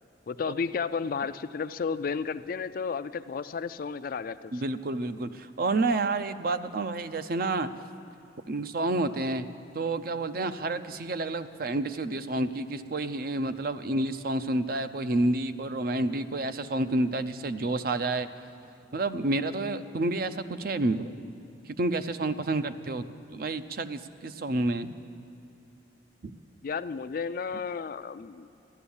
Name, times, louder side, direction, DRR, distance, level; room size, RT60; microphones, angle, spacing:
voice 1, 0.3-4.6 26.6-28.5, left 5 dB, 50° left, 13 dB, 0.4 m, -32 dB
voice 2, 4.5-7.7 8.5-9.5 9.7-18.3 18.9-21.2 21.7-23.0 23.3-24.9 26.2-26.3, right 2 dB, 55° right, 11 dB, 0.5 m, -29 dB
14.5 x 11.5 x 7.1 m, 2.8 s
head